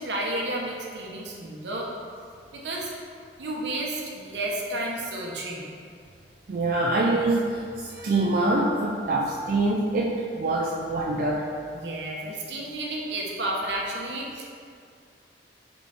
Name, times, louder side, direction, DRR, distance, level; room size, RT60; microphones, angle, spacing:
voice 1, 0.0-1.9 2.5-2.9 3.4-5.6 11.7-14.4, right 1 dB, 80° right, -2 dB, 1.0 m, -31 dB
voice 2, 6.5-11.5, right 2 dB, 50° right, -2 dB, 0.5 m, -25 dB
6.7 x 4.4 x 3.5 m, 2.3 s
head